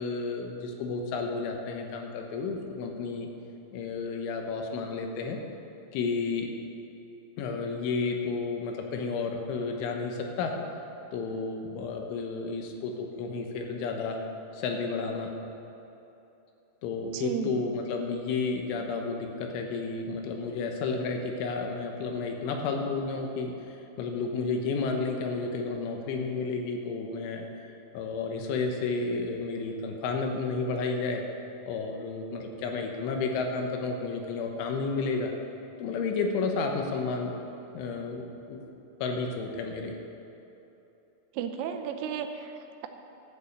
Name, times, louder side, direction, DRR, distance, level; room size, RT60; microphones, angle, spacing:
voice 1, 0.0-3.3 3.7-5.4 5.9-6.5 7.4-10.6 11.1-14.2 14.5-15.3 16.8-27.5 27.9-31.2 31.7-35.3 35.8-37.3 37.7-38.2 38.5-38.6 39.0-39.9, left 4 dB, 80° left, 2 dB, 3.5 m, -31 dB
voice 2, 17.1-17.5 41.3-42.9, right 8 dB, 90° right, 6 dB, 3.3 m, -34 dB
12.5 x 6.9 x 8.2 m, 2.9 s
omnidirectional pair, 5.7 m